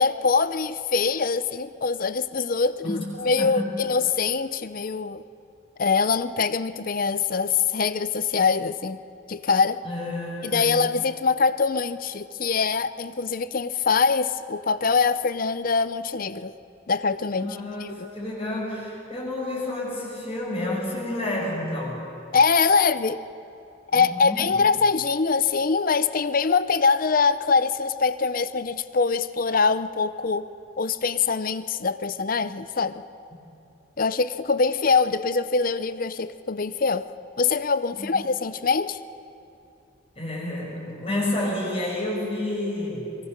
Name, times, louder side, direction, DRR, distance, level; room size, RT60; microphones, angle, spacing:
voice 1, 0.0-5.2 5.8-9.0 9.3-9.8 10.4-16.5 16.9-17.5 22.3-23.2 23.9-30.5 30.8-33.0 34.0-37.1 37.4-39.0, left 5 dB, 45° left, 14 dB, 0.6 m, -23 dB
voice 2, 3.4-3.7 9.8-10.8 17.3-22.1 23.9-24.6 37.9-38.1 40.2-43.2, left 1 dB, 30° left, -2 dB, 6.0 m, -30 dB
23.5 x 22.5 x 6.7 m, 2.7 s
head